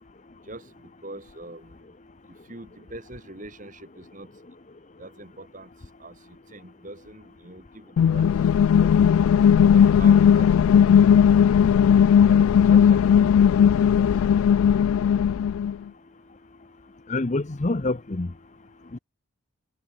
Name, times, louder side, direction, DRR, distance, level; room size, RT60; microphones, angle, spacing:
voice 1, 0.5-1.8 2.3-4.3 5.0-5.7 6.0-8.3 8.6-8.9 9.7-11.8 12.2-14.2, right 2 dB, 40° right, 3.4 m, -44 dB
sound 1, 8.0-15.7, left 8 dB, 85° left, 0.3 m, -17 dB
voice 2, 17.1-18.3 18.9-19.0, left 2 dB, 35° left, 0.7 m, -26 dB
head